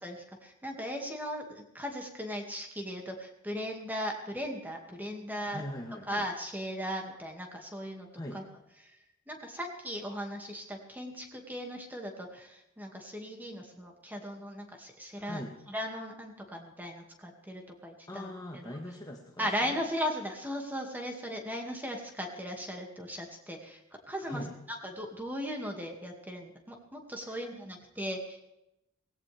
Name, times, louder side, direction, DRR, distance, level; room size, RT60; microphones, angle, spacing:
voice 1, 0.0-5.6 6.1-8.4 8.8-9.0 9.3-15.4 15.7-18.8 19.4-23.8 24.1-24.4 24.7-28.5, equal, 10° right, 2 dB, 2.3 m, -38 dB
voice 2, 5.5-6.2 8.1-8.4 15.2-15.6 18.1-19.8 24.2-24.5 27.3-27.5, left 1 dB, 20° left, 1 dB, 1.6 m, -41 dB
18.0 x 16.5 x 3.5 m, 0.88 s
head